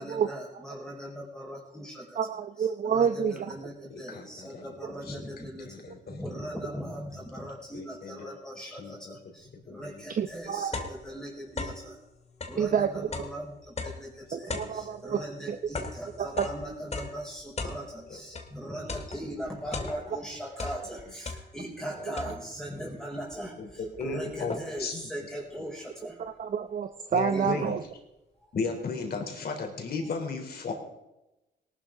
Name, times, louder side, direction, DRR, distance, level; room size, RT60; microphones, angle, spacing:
voice 1, 0.0-2.2 2.6-12.0 12.5-26.2 27.3-27.7, equal, 5° left, -3 dB, 4.9 m, -40 dB
voice 2, 2.1-3.5 4.8-4.9 10.1-10.9 12.5-13.1 14.3-15.2 15.5-15.6 16.2-16.5 22.1-22.2 26.2-27.8, right 7 dB, 50° right, 8 dB, 0.8 m, -29 dB
voice 3, 3.9-5.2 5.6-6.3 7.7-8.3 8.6-9.2 9.5-10.0 14.5-14.6 18.1-18.2 23.6-25.0 27.1-27.8 28.5-30.7, left 4 dB, 60° left, 2 dB, 3.6 m, -35 dB
sound 1, 9.8-9.9 10.3-11.9 12.3-18.6 18.9-20.3 20.5-21.8 22.2-22.7 23.3-23.4 23.7-24.9, left 3 dB, 35° left, 2.0 m, -38 dB
18.5 x 12.0 x 3.8 m, 0.95 s
cardioid pair, 75°, 19 cm